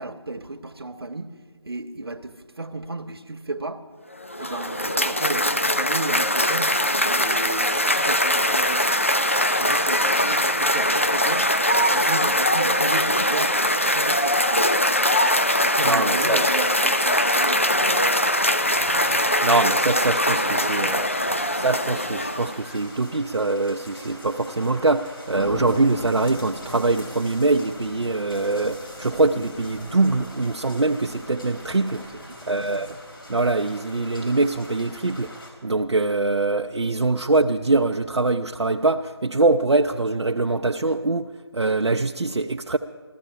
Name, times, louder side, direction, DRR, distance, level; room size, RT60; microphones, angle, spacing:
voice 1, 0.0-1.3 1.6-3.8 4.4-6.8 7.1-8.9 9.6-11.5 11.8-14.5 15.6-18.1 20.2-21.1 32.0-32.4, right 2 dB, 60° right, 1.1 m, -34 dB
Cheering / Applause, 4.1-22.8, left 1 dB, 30° left, 0.3 m, -22 dB
voice 2, 15.8-16.5 19.4-21.1 21.5-32.1 32.5-33.0 33.3-35.3 35.6-42.8, right 3 dB, 80° right, 0.6 m, -23 dB
sound 1, 18.6-35.5, left 1 dB, 50° left, 4.0 m, -40 dB
15.5 x 14.0 x 5.6 m
figure-of-eight pair, 170°, 14 cm